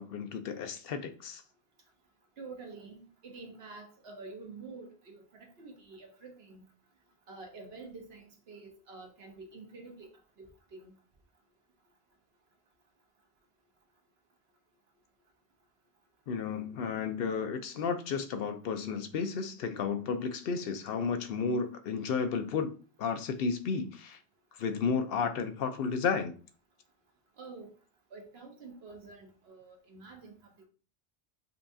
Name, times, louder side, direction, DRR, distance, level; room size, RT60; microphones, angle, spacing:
voice 1, 0.0-1.4 16.3-22.7 23.0-24.2 24.6-26.3, left 5 dB, 70° left, 0.8 m, -32 dB
voice 2, 2.4-6.7 7.3-10.1 10.4-11.0 27.4-27.7 28.1-30.7, right 3 dB, 80° right, 1.2 m, -48 dB
5.3 x 2.3 x 2.6 m
omnidirectional pair, 1.0 m